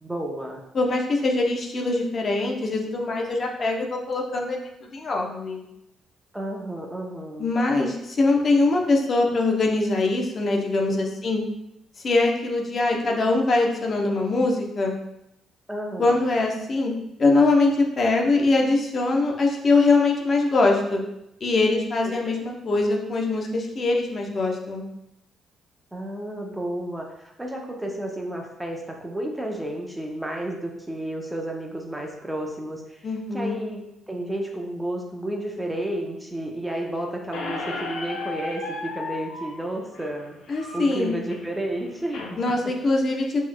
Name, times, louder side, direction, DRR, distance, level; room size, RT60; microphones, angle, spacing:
voice 1, 0.0-0.6 6.3-7.5 15.7-16.2 22.7-22.8 25.9-27.0 27.4-42.4 42.6-42.7, right 1 dB, 10° right, 1 dB, 0.7 m, -32 dB
voice 2, 0.7-5.6 7.4-11.4 12.0-14.9 16.0-16.9 17.2-21.0 21.4-24.9 33.0-33.6 40.5-41.1 42.4-43.4, left 3 dB, 45° left, 0 dB, 0.7 m, -22 dB
Squeak, 37.3-42.3, left 3 dB, 80° left, 0.7 m, -35 dB
5.9 x 3.1 x 2.2 m, 0.84 s
cardioid pair, 90°, 0 cm